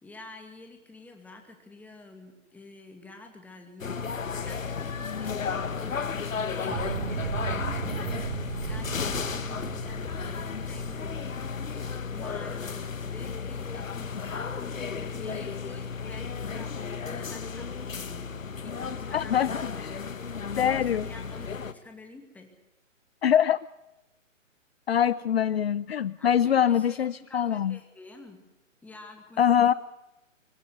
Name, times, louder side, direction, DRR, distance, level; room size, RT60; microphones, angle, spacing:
voice 1, 0.0-4.0 4.3-6.9 7.2-11.3 12.1-19.6 20.6-22.5 26.2-28.4 28.8-29.7, left 2 dB, 5° left, 4 dB, 2.4 m, -49 dB
sound 1, 3.8-21.7, left 5 dB, 80° left, 1.7 m, -34 dB
sound 2, 6.7-12.4, right 9 dB, 60° right, 0.7 m, -36 dB
voice 2, 19.1-19.5 19.8-19.9 20.6-21.1 23.2-23.6 24.9-27.8 29.4-29.7, left 9 dB, 50° left, 18 dB, 0.7 m, -23 dB
25.5 x 15.0 x 8.1 m, 0.94 s
hypercardioid pair, 145°, 39 cm